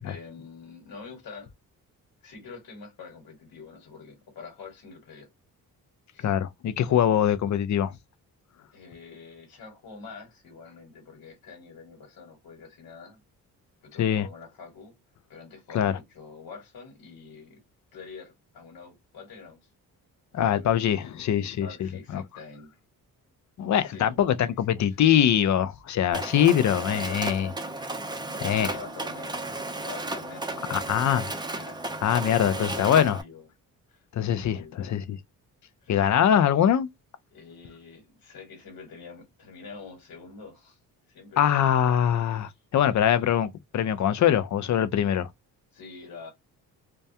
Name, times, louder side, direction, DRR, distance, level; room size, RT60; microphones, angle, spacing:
voice 1, 0.0-1.5 2.2-5.3 6.1-6.3 8.7-13.2 13.8-14.9 15.3-17.6 17.9-19.7 20.3-20.8 21.6-22.7 23.7-25.0 28.5-29.5 29.8-30.9 31.5-33.5 33.9-34.9 35.8-36.1 37.3-40.8 41.1-41.9 42.3-42.6 45.7-46.3, left 4 dB, 70° left, 1.4 m, -46 dB
voice 2, 6.2-7.9 14.0-14.3 15.7-16.0 20.3-22.2 23.6-27.5 28.4-28.7 30.7-31.2 32.0-33.2 34.1-35.0 35.9-36.9 41.4-45.3, left 10 dB, 50° left, 0.5 m, -23 dB
Mechanisms, 26.1-33.2, right 2 dB, 10° right, 0.5 m, -34 dB
2.2 x 2.2 x 2.6 m
cardioid pair, 80°, 37 cm